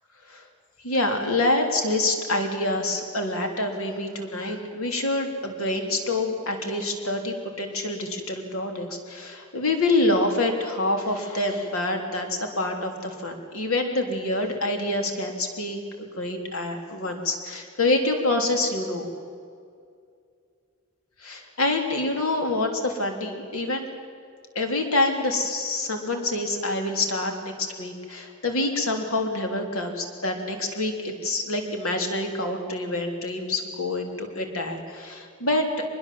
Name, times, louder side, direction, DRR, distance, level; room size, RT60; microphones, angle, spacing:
voice 1, 0.8-19.1 21.2-23.9 24.6-35.8, left 2 dB, 85° left, 4 dB, 3.5 m, -26 dB
24.0 x 21.5 x 7.7 m, 2.3 s
head